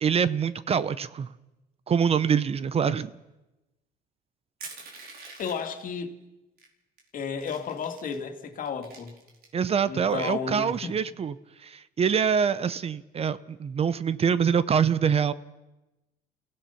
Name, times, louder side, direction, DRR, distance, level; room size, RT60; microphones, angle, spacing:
voice 1, 0.0-1.3 1.9-3.1 9.5-11.3 11.6-15.3, right 7 dB, 35° right, 16 dB, 0.7 m, -25 dB
Crushing, 4.6-5.8 6.6-6.7 7.0-8.2 8.6-9.7, right 4 dB, 65° right, 4.7 m, -45 dB
voice 2, 5.4-6.1 7.1-9.2 9.8-11.0, left 6 dB, 55° left, 5 dB, 2.3 m, -33 dB
29.5 x 16.0 x 5.8 m, 1.0 s
cardioid pair, 110°, 17 cm